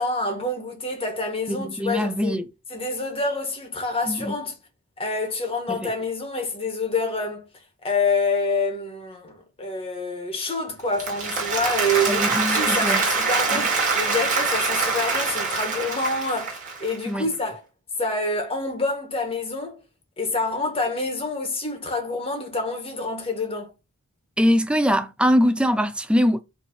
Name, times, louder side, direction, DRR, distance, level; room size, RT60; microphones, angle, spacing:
voice 1, 0.0-2.4 2.7-4.5 5.0-7.5 7.8-17.6 18.0-19.8 20.2-23.7, left 2 dB, 25° left, 1.7 m, -27 dB
voice 2, 1.5-2.5 4.0-4.3 5.7-5.9 12.0-13.0 13.5-13.6 17.1-17.3 24.4-26.4, equal, 5° right, 0.5 m, -22 dB
Applause, 10.8-17.0, right 4 dB, 40° right, 2.4 m, -24 dB
5.4 x 3.4 x 5.5 m
head